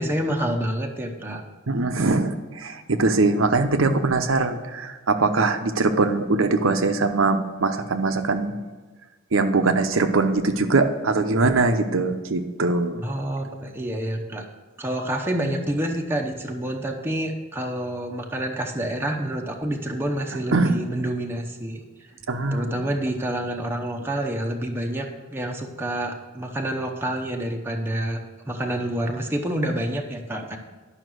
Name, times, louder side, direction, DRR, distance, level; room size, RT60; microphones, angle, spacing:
voice 1, 0.0-1.4 13.0-14.4 14.8-21.8 22.5-30.6, right 1 dB, 10° right, 1 dB, 0.8 m, -28 dB
voice 2, 1.7-8.5 9.3-13.1 20.5-20.7 22.3-22.7, right 3 dB, 75° right, 8 dB, 0.8 m, -22 dB
11.0 x 5.7 x 6.3 m, 1.3 s
head